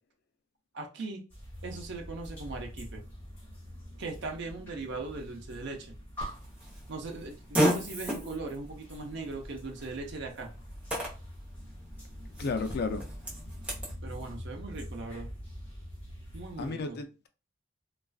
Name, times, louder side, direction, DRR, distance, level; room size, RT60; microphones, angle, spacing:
voice 1, 0.7-1.2 1.6-3.0 4.0-5.9 6.9-10.5 14.0-15.3 16.3-17.0, right 3 dB, 60° right, 0.5 m, -39 dB
sound 1, 1.3-16.7, equal, 10° left, 1.3 m, -45 dB
Fart, 6.2-13.9, equal, 5° right, 0.8 m, -35 dB
voice 2, 12.4-13.1 16.6-17.3, left 4 dB, 55° left, 0.4 m, -33 dB
2.4 x 2.3 x 2.3 m
head